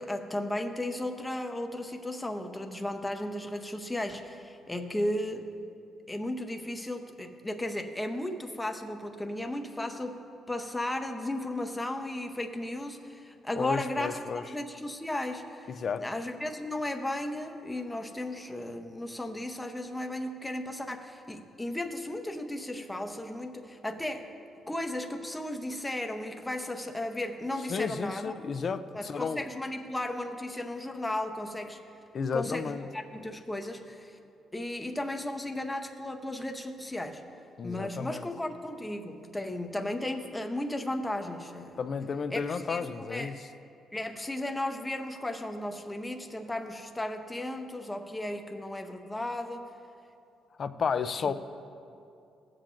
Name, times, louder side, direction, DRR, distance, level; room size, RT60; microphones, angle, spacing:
voice 1, 0.0-5.5 6.1-24.3 24.7-28.3 28.9-31.8 32.3-34.2 34.5-37.2 37.6-41.8 42.3-43.3 43.9-49.7 51.2-51.3, left 1 dB, 10° left, 5 dB, 0.8 m, -35 dB
voice 2, 13.6-14.4 15.7-16.1 27.7-29.4 32.1-32.9 37.6-38.3 41.8-43.4 50.6-51.3, left 5 dB, 50° left, 11 dB, 0.4 m, -32 dB
16.0 x 7.4 x 2.6 m, 2.6 s
cardioid pair, 85°, 0 cm